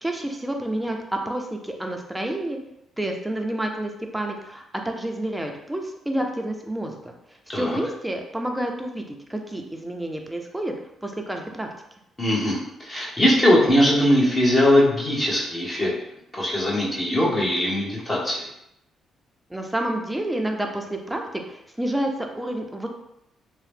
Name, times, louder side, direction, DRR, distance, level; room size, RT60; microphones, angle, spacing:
voice 1, 0.0-2.6 3.0-7.1 7.5-10.7 11.0-11.7 19.5-22.9, right 1 dB, 5° right, 2 dB, 0.5 m, -29 dB
voice 2, 12.2-15.9 16.4-18.4, left 1 dB, 25° left, -4 dB, 0.9 m, -20 dB
2.8 x 2.0 x 3.3 m, 0.82 s
cardioid pair, 90°, 0 cm